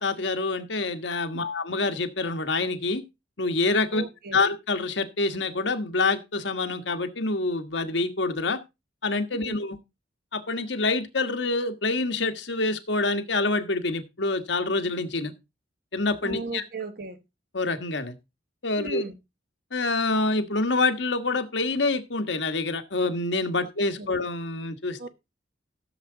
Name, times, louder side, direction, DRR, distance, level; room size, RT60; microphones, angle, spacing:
voice 1, 0.0-3.0 3.4-4.0 4.3-8.6 9.0-9.8 10.3-15.3 15.9-16.6 17.5-18.1 18.6-19.0 19.7-25.1, left 3 dB, 70° left, 1.5 m, -26 dB
voice 2, 3.9-4.4 9.4-9.6 16.2-17.2 18.8-19.2 24.0-24.1 25.0-25.1, right 3 dB, 55° right, 1.5 m, -36 dB
15.0 x 7.3 x 3.9 m
head